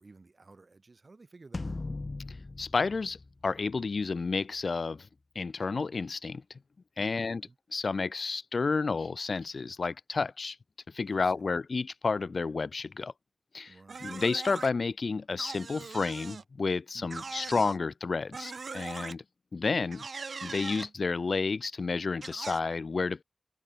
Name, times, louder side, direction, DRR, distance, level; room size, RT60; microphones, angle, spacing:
voice 1, 0.0-1.9 7.0-7.6 11.1-11.3 13.7-14.2 16.9-17.6, right 3 dB, 55° right, 3.9 m, -55 dB
sound 1, 1.5-4.1, left 3 dB, 45° left, 0.4 m, -39 dB
voice 2, 2.6-3.2 3.4-5.1 5.3-6.4 7.0-7.4 7.7-10.6 10.9-13.1 13.5-13.7 14.0-19.2 19.5-20.1 20.4-23.2, left 4 dB, 75° left, 0.9 m, -31 dB
sound 2, 13.9-14.7 15.4-16.4 17.1-17.8 18.3-19.2 19.9-20.9 22.2-22.6, right 4 dB, 85° right, 1.1 m, -41 dB
wide cardioid pair, 60°, 0 cm